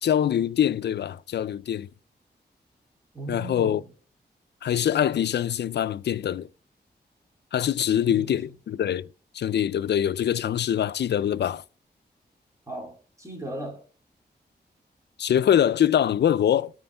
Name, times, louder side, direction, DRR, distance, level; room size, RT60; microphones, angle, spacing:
voice 1, 0.0-1.9 3.3-3.8 4.6-6.5 7.5-9.1 9.3-11.6 15.2-16.7, left 10 dB, 75° left, 0.4 m, -24 dB
voice 2, 3.1-3.8 8.0-8.5 12.7-13.9, right 2 dB, 15° right, 2.9 m, -37 dB
13.0 x 4.4 x 3.4 m
wide cardioid pair, 100°, 18 cm